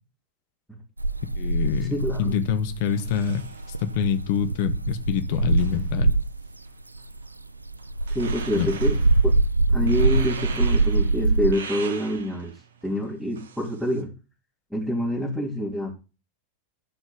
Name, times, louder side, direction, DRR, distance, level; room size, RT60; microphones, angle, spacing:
sound 1, 1.0-6.5 6.9-11.5, right 3 dB, 85° right, 0.4 m, -24 dB
voice 1, 1.4-3.4 3.8-6.1 8.6-8.7, left 8 dB, 50° left, 10 dB, 1.3 m, -26 dB
voice 2, 1.9-2.4 8.1-9.0 9.2-9.3 9.7-12.5 12.8-14.1 14.7-15.9, equal, ahead, -5 dB, 3.2 m, -26 dB
sound 2, 2.9-14.0, right 6 dB, 65° right, 1.5 m, -43 dB
12.5 x 5.3 x 5.2 m, 0.31 s
figure-of-eight pair, 90°, 0 cm